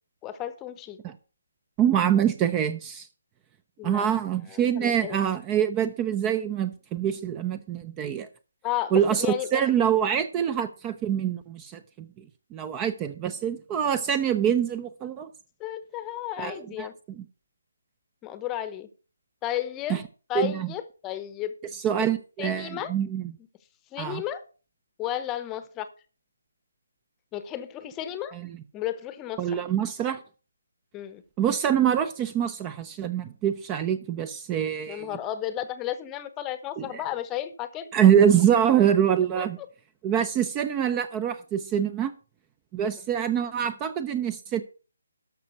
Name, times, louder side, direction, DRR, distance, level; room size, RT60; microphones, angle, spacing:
voice 1, 0.2-1.0 3.8-4.1 4.5-5.2 8.6-9.8 15.6-16.9 18.2-18.9 19.4-21.6 22.4-22.9 23.9-24.4 25.0-25.9 27.3-28.3 28.7-29.6 30.9-31.2 34.9-37.9 39.3-39.7, left 12 dB, 15° left, 0.9 m, -33 dB
voice 2, 1.8-3.1 3.8-8.3 8.9-9.3 9.5-12.1 12.5-15.3 16.4-16.9 17.2-17.3 19.9-20.0 20.3-20.7 21.7-23.3 24.0-24.2 28.3-28.5 29.4-30.2 31.4-35.1 36.8-37.0 37.9-39.6 40.0-42.1 42.7-44.6, right 9 dB, 20° right, 0.6 m, -25 dB
13.0 x 6.0 x 5.6 m
figure-of-eight pair, 150°, 0 cm